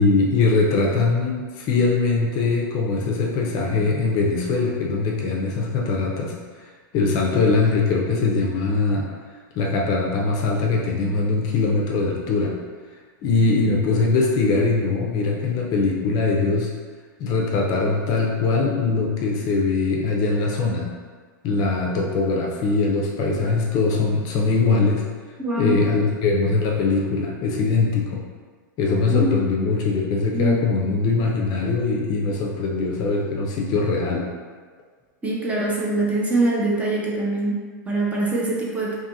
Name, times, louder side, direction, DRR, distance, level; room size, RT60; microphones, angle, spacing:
voice 1, 0.0-6.3 6.9-9.1 9.5-12.5 13.2-16.7 17.2-20.9 21.4-25.0 25.6-28.2 28.8-34.3, left 3 dB, 40° left, -1 dB, 0.5 m, -21 dB
voice 2, 25.4-25.8 29.1-29.3 30.3-30.6 35.2-39.0, right 2 dB, 15° right, -5 dB, 0.5 m, -23 dB
2.6 x 2.4 x 2.7 m, 1.5 s
hypercardioid pair, 125°, 11 cm